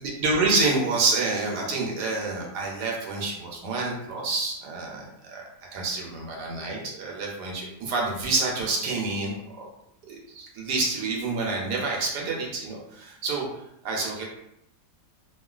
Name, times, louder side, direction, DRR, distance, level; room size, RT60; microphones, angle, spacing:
voice 1, 0.0-5.4 5.7-9.7 10.1-13.5 13.8-14.2, right 3 dB, 85° right, -2 dB, 1.3 m, -28 dB
3.0 x 2.4 x 2.3 m, 0.78 s
omnidirectional pair, 1.7 m